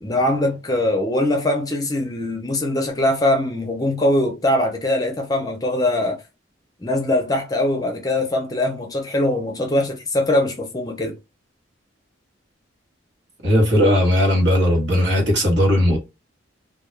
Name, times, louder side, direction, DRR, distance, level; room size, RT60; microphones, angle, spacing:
voice 1, 0.0-6.2 6.8-11.2, left 1 dB, 20° left, 0.5 m, -22 dB
voice 2, 13.4-16.0, equal, 60° right, 1.1 m, -17 dB
2.2 x 2.2 x 3.0 m
head